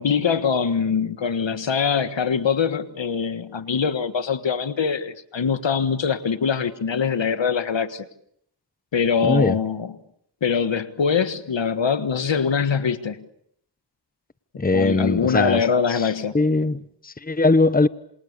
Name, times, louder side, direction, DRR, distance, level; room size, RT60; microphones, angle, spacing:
voice 1, 0.0-8.0 8.9-9.9 10.4-13.2 14.7-16.4, left 6 dB, 80° left, 1.6 m, -23 dB
voice 2, 9.2-9.6 14.6-15.6 15.9-16.0 16.3-17.9, left 3 dB, 20° left, 1.1 m, -20 dB
27.5 x 27.5 x 6.9 m
cardioid pair, 55°, 44 cm